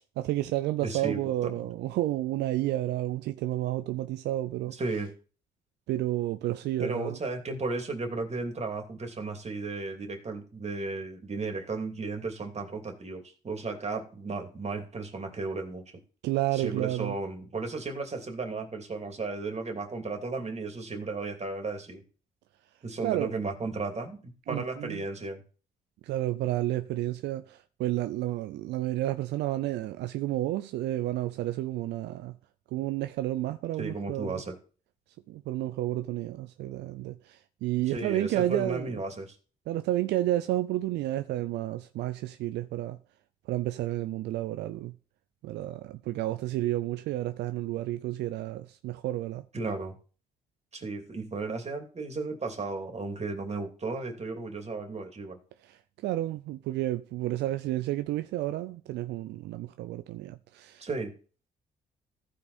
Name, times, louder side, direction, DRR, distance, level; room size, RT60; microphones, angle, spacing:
voice 1, 0.0-4.7 5.9-7.2 16.2-17.2 23.0-23.3 24.5-25.0 26.0-32.3 32.7-34.4 35.3-39.0 39.7-43.0 43.5-44.9 45.4-49.4 55.6-60.9, right 15 dB, 85° right, 0.5 m, -31 dB
voice 2, 0.8-1.5 4.7-5.1 6.8-15.8 16.5-22.0 22.8-25.4 33.8-34.5 37.9-39.4 49.5-49.9 50.7-55.4 60.8-61.1, right 3 dB, 40° right, 2.8 m, -34 dB
15.0 x 5.0 x 4.2 m
supercardioid pair, 60°, 17 cm